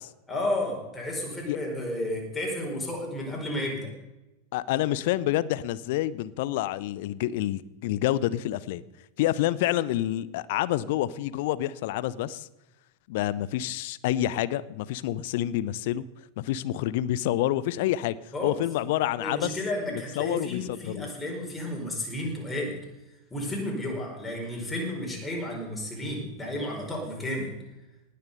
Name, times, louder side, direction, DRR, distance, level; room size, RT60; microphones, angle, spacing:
voice 1, 0.3-3.9 18.3-18.6 19.2-22.8 23.3-27.6, left 1 dB, 10° left, -1 dB, 4.7 m, -32 dB
voice 2, 4.5-8.8 9.2-12.5 13.1-16.0 16.4-18.2 18.4-19.6 19.9-21.1, left 14 dB, 50° left, 18 dB, 0.6 m, -28 dB
19.0 x 6.7 x 6.8 m, 0.99 s
figure-of-eight pair, 90°, 0 cm